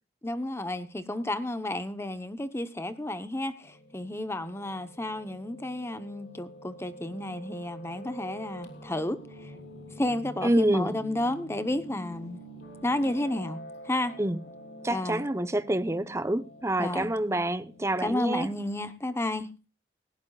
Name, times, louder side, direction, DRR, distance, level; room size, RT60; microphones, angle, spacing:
voice 1, 0.2-9.5 10.0-12.4 12.8-14.2 14.9-15.2 16.8-17.1 18.0-19.5, left 1 dB, 15° left, 0.9 m, -32 dB
Piano, 3.6-18.1, equal, 70° left, 3.2 m, -47 dB
voice 2, 10.4-11.0 14.2-14.4 14.8-18.5, right 1 dB, 15° right, 0.8 m, -27 dB
18.5 x 16.5 x 2.4 m
head